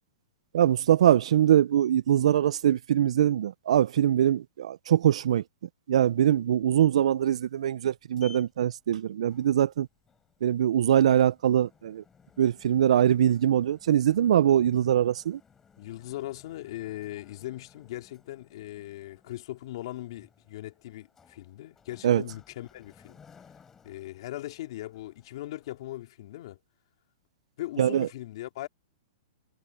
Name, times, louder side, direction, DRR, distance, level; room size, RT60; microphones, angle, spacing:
voice 1, 0.5-5.4 5.9-9.9 10.4-12.0 12.4-15.4 22.0-22.2 27.8-28.1, right 10 dB, 70° right, 0.3 m, -23 dB
Sliding door, 7.6-25.8, left 6 dB, 10° left, 3.6 m, -59 dB
voice 2, 15.8-23.2 23.8-26.6 27.6-28.7, left 15 dB, 50° left, 2.8 m, -39 dB
hypercardioid pair, 165°, 3 cm